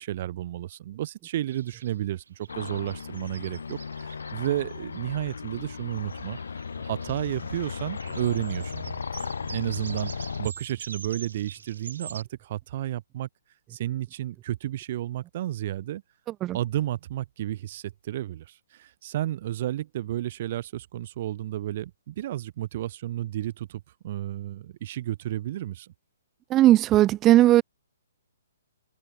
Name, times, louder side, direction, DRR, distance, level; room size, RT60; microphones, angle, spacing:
voice 1, 0.0-6.4 6.8-13.3 13.7-16.0 16.5-25.9, right 13 dB, 45° right, 1.6 m, -32 dB
sound 1, 1.5-12.2, right 6 dB, 80° right, 5.9 m, -46 dB
sound 2, 2.5-10.5, left 5 dB, 85° left, 3.4 m, -36 dB
voice 2, 26.5-27.6, right 14 dB, 20° right, 0.3 m, -17 dB
hypercardioid pair, 155°, 0 cm